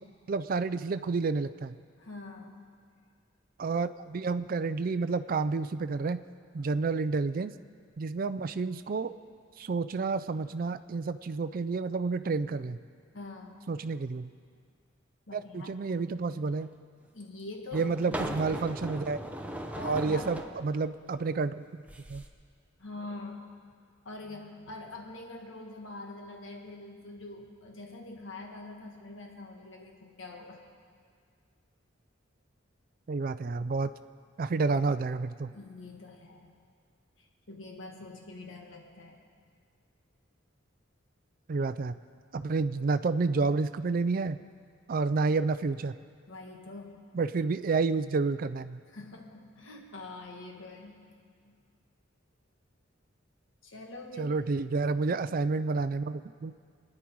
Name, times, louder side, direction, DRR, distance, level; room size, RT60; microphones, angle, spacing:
voice 1, 0.3-1.8 3.6-6.2 6.5-7.5 8.0-9.1 9.6-12.8 13.7-14.3 15.3-16.7 17.7-19.2 19.8-21.8 22.1-22.2 33.1-33.9 34.4-35.5 41.5-42.0 42.3-44.4 44.9-45.9 47.1-48.8 54.2-56.5, right 4 dB, 45° right, 11 dB, 0.4 m, -30 dB
voice 2, 2.0-2.7 6.6-6.7 13.1-13.6 15.3-15.8 17.1-18.5 19.8-20.3 22.8-23.6 24.0-30.6 35.5-36.5 37.2-39.2 46.3-47.1 48.9-51.1 51.4-51.5 53.6-54.3, left 2 dB, 80° left, 2 dB, 1.6 m, -44 dB
sound 1, 16.6-16.7 17.7-20.6 21.8-22.3, equal, 5° right, 0.8 m, -38 dB
26.5 x 9.9 x 4.7 m, 2.1 s
head